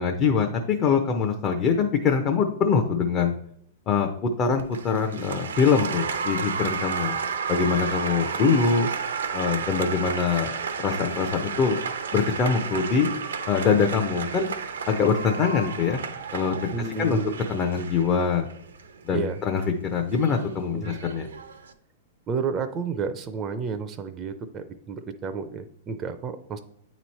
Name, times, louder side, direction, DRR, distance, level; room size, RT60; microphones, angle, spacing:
voice 1, 0.0-3.3 3.9-7.2 7.5-8.9 9.3-10.5 10.8-11.8 12.1-13.1 13.5-14.5 14.9-16.0 16.3-16.7 17.0-17.2 17.5-18.5 19.0-19.6 19.9-21.3, left 5 dB, 30° left, 3 dB, 0.6 m, -23 dB
Applause, 4.6-21.7, right 6 dB, 85° right, 0.6 m, -32 dB
voice 2, 16.7-17.4 19.1-19.4 20.7-21.0 22.3-26.6, right 5 dB, 25° right, 8 dB, 0.5 m, -31 dB
8.6 x 3.1 x 4.2 m, 0.70 s
hypercardioid pair, 130°, 0 cm